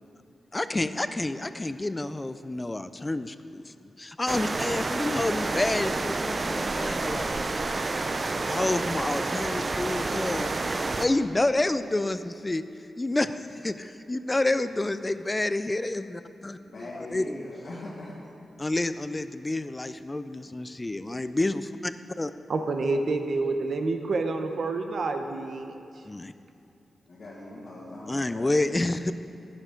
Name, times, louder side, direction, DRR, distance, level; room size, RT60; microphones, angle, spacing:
voice 1, 0.5-7.7 8.2-10.5 11.0-12.6 13.0-17.3 18.6-22.3 26.1-26.3 28.1-29.1, left 2 dB, 20° left, 12 dB, 0.3 m, -29 dB
sound 1, 4.3-11.1, right 3 dB, 35° right, 0.4 m, -29 dB
voice 2, 16.6-18.2 27.1-28.5, left 1 dB, 65° left, -9 dB, 1.8 m, -41 dB
voice 3, 22.5-25.8, right 3 dB, 65° right, 5 dB, 0.8 m, -28 dB
10.5 x 9.8 x 3.8 m, 2.6 s
cardioid pair, 85°, 0 cm